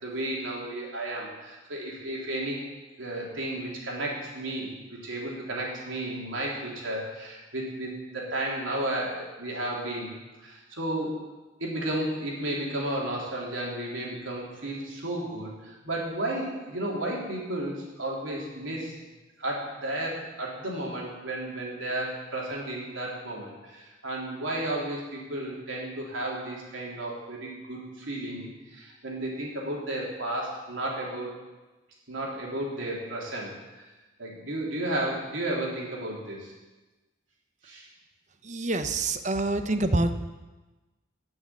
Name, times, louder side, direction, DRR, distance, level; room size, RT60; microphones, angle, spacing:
voice 1, 0.0-2.6 3.0-11.2 11.6-18.9 19.4-31.3 32.1-33.9 34.2-36.5 37.6-37.9, right 1 dB, 90° right, -3 dB, 3.4 m, -33 dB
voice 2, 38.4-40.1, right 2 dB, 40° right, 9 dB, 0.8 m, -26 dB
11.5 x 6.5 x 8.5 m, 1.1 s
head